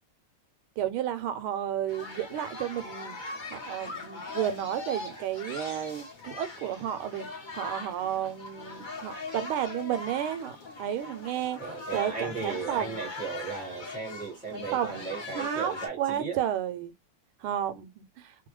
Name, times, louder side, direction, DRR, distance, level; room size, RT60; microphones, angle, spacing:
voice 1, 0.8-3.2 3.5-7.3 7.5-11.6 11.9-13.1 14.5-16.9 17.4-18.3, right 10 dB, 80° right, 1.4 m, -32 dB
sound 1, 1.9-15.9, left 3 dB, 45° left, 0.6 m, -41 dB
voice 2, 11.6-16.4, right 5 dB, 5° right, 0.8 m, -36 dB
3.4 x 2.1 x 3.0 m
omnidirectional pair, 2.4 m